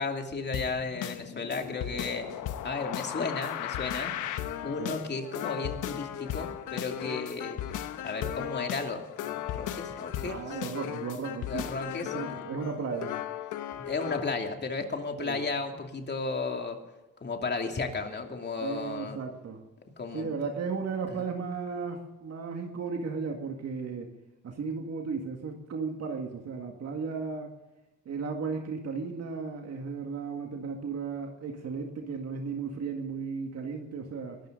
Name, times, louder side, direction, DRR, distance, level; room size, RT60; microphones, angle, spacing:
voice 1, 0.0-4.1 4.6-7.6 8.0-10.4 11.5-12.4 13.7-16.8 17.2-19.2 20.0-20.3, left 4 dB, 35° left, 3 dB, 2.7 m, -34 dB
sound 1, 0.5-14.3, left 11 dB, 85° left, 1.1 m, -36 dB
voice 2, 10.2-11.7 12.1-13.1 15.2-15.4 18.6-19.6 20.1-24.1 24.4-27.5 28.1-34.4, right 5 dB, 55° right, 3 dB, 2.0 m, -35 dB
21.0 x 13.0 x 3.9 m, 1.1 s
cardioid pair, 90°, 30 cm